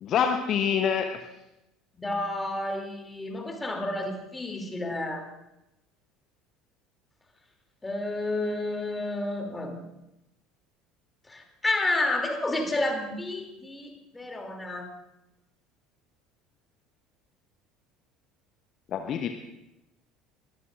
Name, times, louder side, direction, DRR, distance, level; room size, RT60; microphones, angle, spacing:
voice 1, 0.0-1.2 18.9-19.3, left 7 dB, 45° left, 7 dB, 0.8 m, -26 dB
voice 2, 1.9-5.3 7.8-9.8 11.3-14.9, left 2 dB, 15° left, 3 dB, 2.8 m, -30 dB
22.0 x 13.5 x 2.5 m, 0.88 s
figure-of-eight pair, 65°, 0 cm